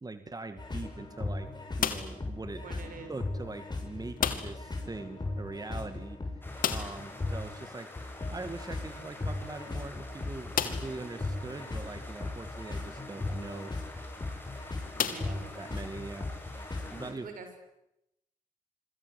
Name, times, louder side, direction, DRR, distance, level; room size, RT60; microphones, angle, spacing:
voice 1, 0.0-1.5 1.8-2.6 3.1-6.2 6.7-7.9 8.3-13.7 15.2-16.3 16.9-17.3, right 3 dB, 25° right, 9 dB, 2.1 m, -42 dB
sound 1, 0.6-17.1, left 2 dB, 30° left, 7.2 m, -38 dB
sound 2, 1.8-2.3 4.2-4.7 5.0-5.1 5.4-5.5 6.6-7.1 8.9-9.0 9.6-9.7 10.5-11.0 11.7-11.8 13.9-14.1 15.0-15.8, left 8 dB, 75° left, 2.3 m, -33 dB
voice 2, 2.6-3.1 15.0-15.4 17.0-17.5, right 5 dB, 75° right, 7 dB, 6.3 m, -45 dB
sound 3, 6.4-17.1, left 1 dB, 15° left, 7.9 m, -48 dB
26.5 x 24.5 x 8.3 m, 0.87 s
supercardioid pair, 55°, 14 cm